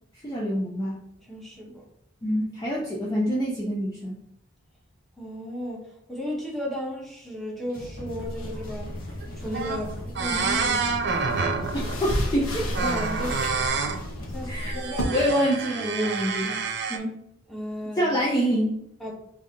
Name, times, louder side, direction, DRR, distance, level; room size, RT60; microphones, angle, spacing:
voice 1, 0.2-1.0 2.2-4.2 11.7-12.7 14.5-14.7 15.1-16.6 16.9-17.2 18.0-18.8, equal, 20° left, -4 dB, 0.5 m, -26 dB
voice 2, 1.2-1.8 5.2-9.0 9.4-11.1 11.8-11.9 12.6-13.9 14.3-15.3 17.5-18.0 19.0-19.1, equal, ahead, -3 dB, 0.9 m, -34 dB
sound 1, 7.7-14.7, left 1 dB, 40° left, 0.9 m, -38 dB
sound 2, 8.3-15.0, equal, 80° left, 0.9 m, -36 dB
sound 3, 9.2-9.3 9.5-9.9 10.1-12.3 12.7-14.0 14.6-17.0, right 4 dB, 50° right, 0.5 m, -28 dB
4.0 x 2.7 x 3.6 m, 0.78 s
head